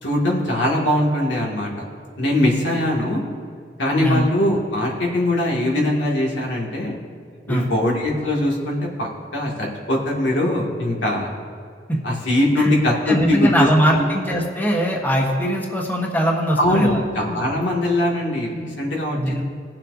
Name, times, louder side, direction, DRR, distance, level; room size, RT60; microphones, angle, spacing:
voice 1, 0.0-1.8 2.2-3.2 3.8-6.9 7.5-11.3 12.0-13.7 14.0-14.1 16.6-19.4, left 1 dB, 85° left, -2 dB, 2.2 m, -21 dB
voice 2, 13.1-17.0 19.1-19.4, equal, 10° left, -1 dB, 1.2 m, -21 dB
19.5 x 7.4 x 2.7 m, 2.3 s
head